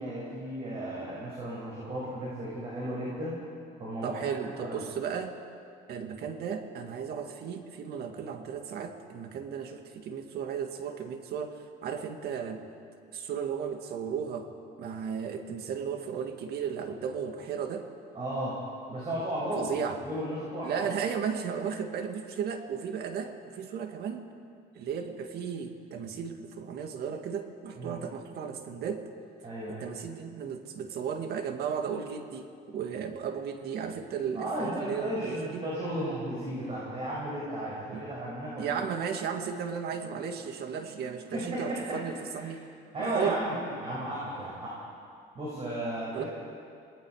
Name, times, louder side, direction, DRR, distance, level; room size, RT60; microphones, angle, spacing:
voice 1, 0.0-3.4 3.8-4.8 18.1-18.6 18.9-19.7 20.0-20.9 27.8-28.0 29.4-29.9 34.3-38.7 41.3-42.0 42.3-42.5 42.9-44.7 45.3-46.3, right 1 dB, 35° right, -5 dB, 6.3 m, -34 dB
voice 2, 4.0-5.4 5.9-12.7 13.1-14.5 14.8-17.9 19.6-20.0 20.6-24.3 24.7-29.1 29.7-35.6 37.9-38.0 38.6-42.6 43.0-43.4 46.1-46.2, right 7 dB, 70° right, 6 dB, 1.9 m, -35 dB
27.5 x 19.0 x 4.9 m, 2.3 s
cardioid pair, 110°, 17 cm